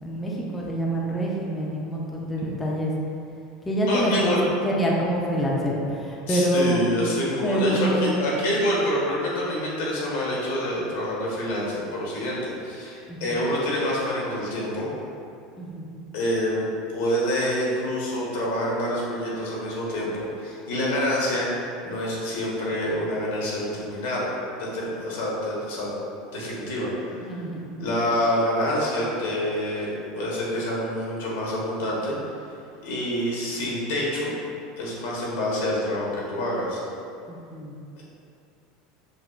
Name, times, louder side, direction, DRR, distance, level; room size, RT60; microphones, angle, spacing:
voice 1, 0.0-2.9 3.6-4.4 4.6-6.8 7.4-8.2 13.1-13.4 15.6-15.9 27.2-27.7 37.3-37.8, right 1 dB, 10° left, -4 dB, 0.5 m, -26 dB
voice 2, 3.9-4.4 6.3-14.9 16.1-16.6 16.9-21.5 21.8-24.3 24.6-25.9 26.3-26.9 27.3-27.4 27.8-32.2 32.8-34.3 34.8-36.8 38.0-38.1, left 1 dB, 80° left, -5 dB, 1.1 m, -27 dB
5.5 x 2.3 x 2.4 m, 2.5 s
supercardioid pair, 155°, 0 cm